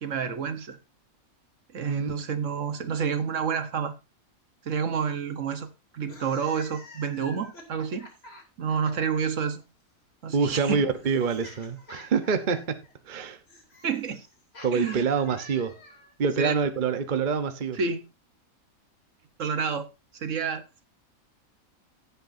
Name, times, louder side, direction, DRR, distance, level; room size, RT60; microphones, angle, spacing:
voice 1, 0.0-0.8 1.7-3.9 4.6-8.1 8.6-9.6 10.2-10.8 13.8-14.3 14.7-15.0 16.4-16.6 17.7-18.0 19.4-19.9 20.1-20.6, right 6 dB, 65° right, 1.4 m, -29 dB
sound 1, 6.0-9.2 10.3-16.2, left 2 dB, 45° left, 2.8 m, -49 dB
voice 2, 10.3-12.8 13.1-13.4 14.6-15.8 16.2-17.8, right 5 dB, 40° right, 1.0 m, -26 dB
16.0 x 8.1 x 2.6 m
omnidirectional pair, 1.5 m